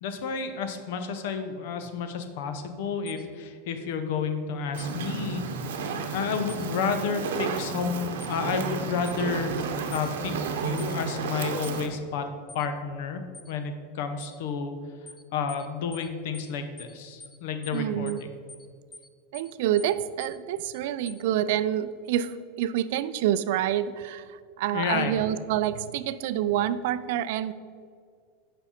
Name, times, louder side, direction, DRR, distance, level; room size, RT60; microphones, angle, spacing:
voice 1, 0.0-9.5 9.9-12.3 12.5-14.7 15.3-18.3 24.7-25.2, left 5 dB, 60° left, 8 dB, 0.7 m, -31 dB
sound 1, 3.1-3.2 4.8-4.9 6.5-6.7 8.2-8.4 9.1-9.2 9.9-10.1 10.8-10.9 11.6-11.8 12.5-12.7 13.3-13.5 14.2-14.4 15.1-15.2 15.5-15.7 15.9-16.1 16.3-16.5 16.8-16.9 17.2-17.4 17.6-17.8 18.1-18.2 18.5-18.7 18.9-19.1 19.3-19.5 19.8-19.9 20.2-20.4 20.6-20.8 21.1-21.2, left 2 dB, 15° left, 0.4 m, -46 dB
Fire, 4.7-11.9, right 5 dB, 85° right, 0.8 m, -32 dB
voice 2, 17.7-18.2 19.3-27.5, right 11 dB, 60° right, 14 dB, 0.3 m, -27 dB
7.2 x 5.3 x 4.3 m, 2.1 s
supercardioid pair, 165°, 0 cm